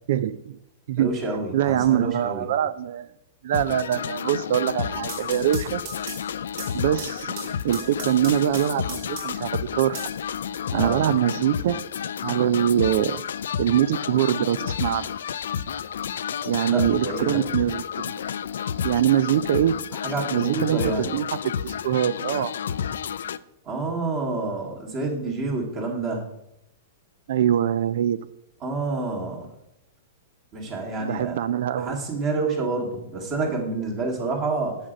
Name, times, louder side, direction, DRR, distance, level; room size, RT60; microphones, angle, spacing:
voice 1, 0.1-0.6 0.9-1.1 1.5-3.1 3.4-5.8 6.7-10.1 10.7-11.9 12.2-13.2 13.6-15.1 16.5-18.2 18.8-19.7 20.3-22.5 27.3-28.2 31.0-32.0, right 10 dB, 60° right, 15 dB, 0.4 m, -23 dB
voice 2, 1.0-2.5 10.7-11.1 16.7-17.4 19.9-21.2 23.7-26.3 28.6-29.5 30.5-31.4 31.8-34.8, right 3 dB, 30° right, -1 dB, 1.9 m, -28 dB
sound 1, 3.5-23.4, left 8 dB, 85° left, 0.3 m, -31 dB
sound 2, 4.9-9.5 9.9-10.9, right 6 dB, 45° right, 1.7 m, -40 dB
7.7 x 6.3 x 5.1 m, 0.82 s
supercardioid pair, 160°, 0 cm